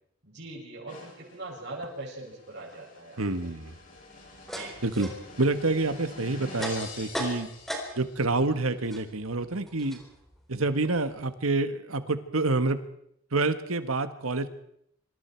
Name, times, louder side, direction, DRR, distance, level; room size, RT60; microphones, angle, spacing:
voice 1, 0.2-3.2 4.4-4.8, right 2 dB, 55° right, -4 dB, 7.2 m, -41 dB
sound 1, 0.9-8.4, left 3 dB, 40° left, 7.1 m, -47 dB
voice 2, 3.2-3.7 4.8-5.1 5.4-7.5 7.9-10.0 10.5-12.8 13.3-14.5, right 2 dB, 85° right, 10 dB, 1.6 m, -27 dB
sound 2, 3.9-8.3 8.5-11.4, equal, ahead, 4.2 m, -39 dB
26.0 x 25.5 x 4.6 m, 0.70 s
head